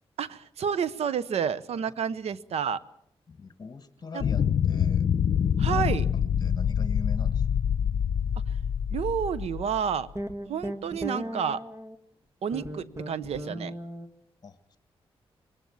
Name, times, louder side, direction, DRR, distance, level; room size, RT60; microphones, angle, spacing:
voice 1, 0.2-2.8 4.1-4.2 5.6-6.0 8.9-10.1 10.5-11.6 12.4-13.7, right 7 dB, 85° right, 17 dB, 0.8 m, -30 dB
voice 2, 3.3-5.1 5.6-6.0 6.4-7.6 14.4-14.8, left 4 dB, 40° left, 10 dB, 1.6 m, -41 dB
sound 1, 4.2-9.9, left 8 dB, 75° left, 0.7 m, -26 dB
sound 2, 10.1-12.0 12.5-14.1, right 1 dB, 25° right, 1.8 m, -36 dB
22.5 x 19.0 x 7.1 m, 0.76 s
cardioid pair, 85°, 10 cm